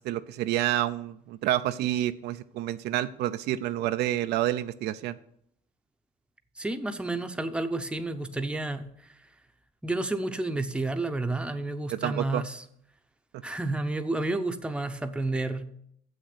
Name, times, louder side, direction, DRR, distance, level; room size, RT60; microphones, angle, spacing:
voice 1, 0.0-5.2 11.9-12.4, right 13 dB, 80° right, 11 dB, 0.5 m, -28 dB
voice 2, 6.6-9.1 9.8-12.6 13.4-15.7, right 2 dB, 5° right, 7 dB, 0.8 m, -30 dB
7.6 x 6.5 x 7.9 m, 0.71 s
cardioid pair, 110°, 17 cm